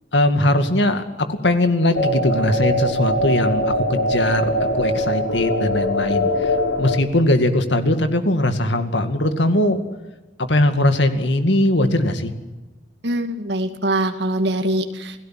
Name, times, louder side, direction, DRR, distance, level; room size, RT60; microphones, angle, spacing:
voice 1, 0.1-1.0 1.3-9.8 10.5-12.3, left 1 dB, 70° left, 8 dB, 2.3 m, -20 dB
sound 1, 1.9-7.0, left 1 dB, 85° left, 3.9 m, -22 dB
voice 2, 13.0-15.2, right 1 dB, 65° right, 7 dB, 2.3 m, -23 dB
28.5 x 17.0 x 7.7 m, 1.1 s
head